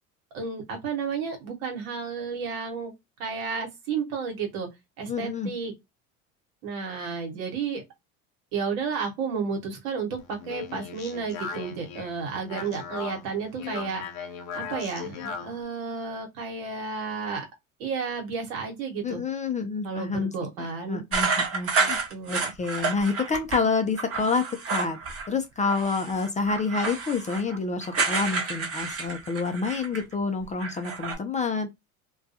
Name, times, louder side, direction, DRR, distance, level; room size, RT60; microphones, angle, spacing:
voice 1, 0.3-2.9 3.2-4.7 5.0-5.7 6.6-7.8 8.5-14.0 14.5-17.4 17.8-19.2 19.8-21.0 21.8-22.5, right 5 dB, 75° right, 1.2 m, -32 dB
voice 2, 5.1-5.5 19.0-20.3 20.6-22.0 22.3-25.0 25.3-31.7, left 4 dB, 20° left, 0.4 m, -28 dB
Speech, 10.2-15.6, left 6 dB, 85° left, 0.7 m, -38 dB
sound 1, 21.1-23.6 24.0-25.3 25.6-30.1 30.4-31.1, right 4 dB, 35° right, 0.9 m, -29 dB
2.3 x 2.2 x 2.6 m
hypercardioid pair, 80°, 40 cm